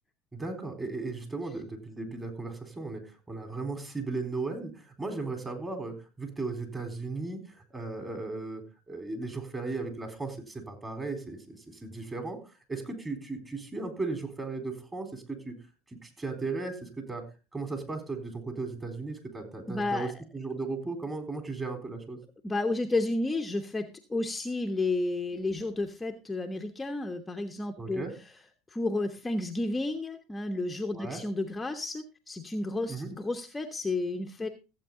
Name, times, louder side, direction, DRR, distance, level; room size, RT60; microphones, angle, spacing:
voice 1, 0.3-12.4 12.7-15.5 15.9-17.2 17.5-22.2 27.8-28.1 30.9-31.2 32.9-33.1, right 3 dB, 20° right, 6 dB, 4.1 m, -36 dB
voice 2, 19.7-20.1 22.4-28.0 28.7-34.5, left 2 dB, 15° left, 4 dB, 1.2 m, -31 dB
15.0 x 8.2 x 3.8 m, 0.30 s
supercardioid pair, 90°, 0 cm